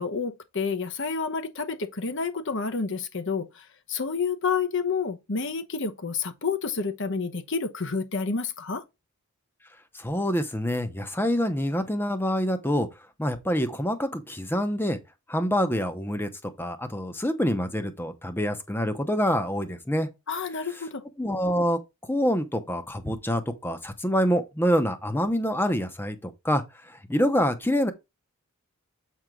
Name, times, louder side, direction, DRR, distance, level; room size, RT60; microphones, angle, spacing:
voice 1, 0.0-3.6 3.9-8.8 20.3-21.0, left 5 dB, 55° left, 1.0 m, -29 dB
voice 2, 9.9-12.9 13.2-15.0 15.3-16.3 16.6-20.1 21.2-21.8 22.1-27.9, equal, 10° left, 0.8 m, -26 dB
8.0 x 4.6 x 3.8 m
head